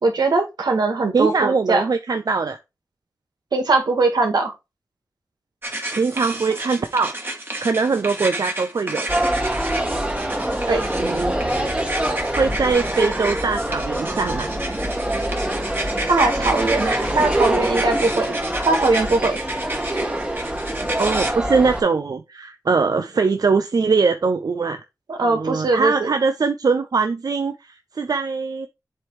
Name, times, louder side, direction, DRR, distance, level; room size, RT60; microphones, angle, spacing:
voice 1, 0.0-1.9 3.5-4.5 10.7-10.8 16.1-18.4 18.7-19.4 25.1-26.1, right 3 dB, 85° right, 1.8 m, -20 dB
voice 2, 1.1-2.6 5.9-7.1 7.6-9.1 11.0-11.3 12.4-14.5 21.0-24.8 25.2-28.7, right 4 dB, 65° right, 0.7 m, -22 dB
sound 1, 5.6-21.3, right 1 dB, 30° right, 2.0 m, -31 dB
sound 2, 9.1-21.8, right 1 dB, 15° right, 1.5 m, -25 dB
7.5 x 3.3 x 4.8 m
wide cardioid pair, 65°, 7 cm